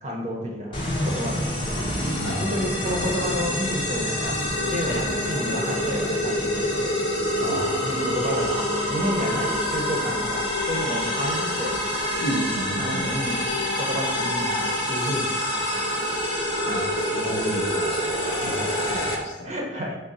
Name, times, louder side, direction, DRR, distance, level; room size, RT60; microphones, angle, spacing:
voice 1, 0.0-1.9 2.4-4.3 4.7-6.9 7.5-11.7 12.7-13.4 13.7-15.8 19.4-20.0, equal, 40° right, -1 dB, 0.6 m, -31 dB
sound 1, 0.7-19.2, equal, 30° left, 0.7 m, -26 dB
sound 2, 2.1-16.8, left 3 dB, 85° right, 0.6 m, -36 dB
voice 2, 2.2-3.2 4.9-5.1 7.4-8.0 12.2-13.1 16.6-19.5, equal, 85° left, 0 dB, 0.7 m, -32 dB
3.6 x 2.0 x 4.0 m, 1.1 s
head